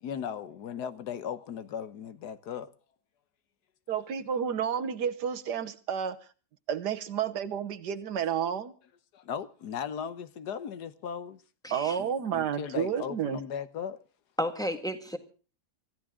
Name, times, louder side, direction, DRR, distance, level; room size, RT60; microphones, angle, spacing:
voice 1, 0.0-2.7 3.9-4.1 9.1-11.4 12.0-14.0, left 8 dB, 80° left, 1.5 m, -37 dB
voice 2, 3.9-6.2 6.7-8.7 11.7-13.4, right 8 dB, 85° right, 1.7 m, -31 dB
voice 3, 11.6-12.0 14.4-15.2, equal, ahead, 1.6 m, -32 dB
25.0 x 14.0 x 3.7 m
omnidirectional pair, 1.7 m